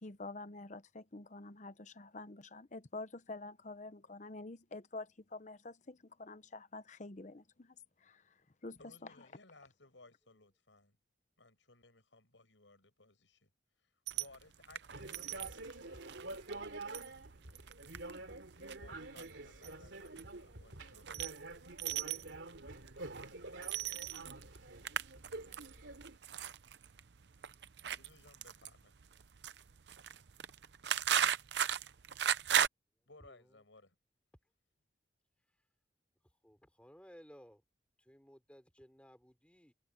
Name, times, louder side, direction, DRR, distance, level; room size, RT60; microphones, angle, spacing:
voice 1, 0.0-7.7 8.0-8.3 8.6-9.3, left 2 dB, 40° left, 0.9 m, -48 dB
voice 2, 8.8-11.0 11.4-13.5 13.8-15.9 18.7-21.3 27.9-28.9 33.1-34.0, left 2 dB, 85° left, 6.7 m, -61 dB
sound 1, 14.1-32.7, right 9 dB, 65° right, 0.7 m, -38 dB
sound 2, 14.9-26.2, right 2 dB, 85° right, 3.0 m, -48 dB
voice 3, 33.2-33.6 36.2-37.6 38.0-39.7, equal, 5° left, 5.6 m, -59 dB
head